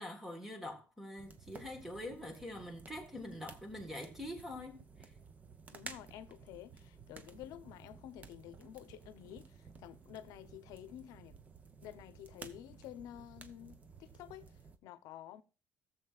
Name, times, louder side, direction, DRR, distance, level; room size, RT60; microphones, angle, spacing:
voice 1, 0.0-5.1, left 1 dB, 5° right, 1.5 m, -45 dB
sound 1, 1.2-14.8, right 5 dB, 25° right, 0.7 m, -55 dB
voice 2, 5.7-11.4 11.8-15.4, left 11 dB, 80° left, 0.7 m, -51 dB
17.5 x 7.1 x 2.4 m
cardioid pair, 175°, 6 cm